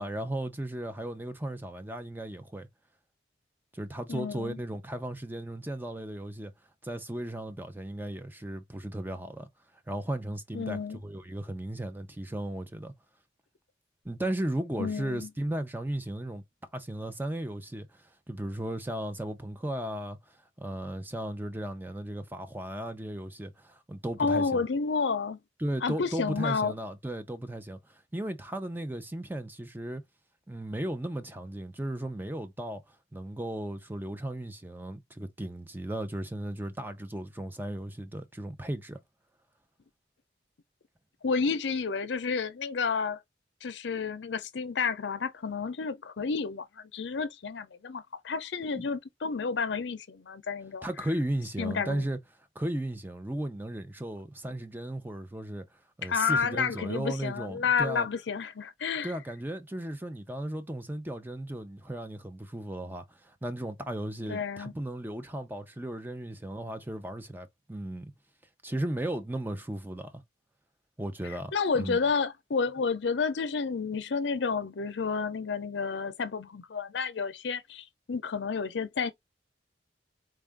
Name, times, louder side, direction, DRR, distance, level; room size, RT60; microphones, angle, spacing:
voice 1, 0.0-2.7 3.7-6.5 6.8-9.5 9.9-12.9 14.0-16.4 16.7-24.6 25.6-30.0 30.5-39.0 48.8-48.9 50.8-52.2 52.5-58.1 59.0-68.1 68.6-70.2 71.0-72.0, right 1 dB, 10° right, 0.6 m, -36 dB
voice 2, 4.1-4.6 10.5-11.0 14.8-15.3 24.2-25.4 25.8-26.7 41.2-43.2 43.6-50.9 51.6-52.0 56.0-59.1 64.3-64.7 71.5-79.1, left 5 dB, 75° left, 0.6 m, -30 dB
4.4 x 2.5 x 3.4 m
head